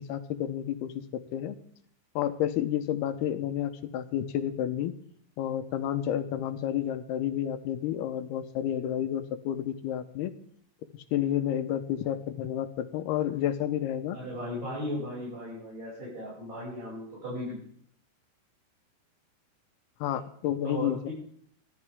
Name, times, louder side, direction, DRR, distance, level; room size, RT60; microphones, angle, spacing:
voice 1, 0.0-1.6 2.2-4.9 5.4-10.3 10.9-14.2 20.0-21.1, left 11 dB, 80° left, 9 dB, 2.9 m, -30 dB
voice 2, 14.1-17.6 20.6-21.1, left 1 dB, 50° right, -7 dB, 8.3 m, -36 dB
23.5 x 14.5 x 3.7 m, 0.63 s
omnidirectional pair, 4.6 m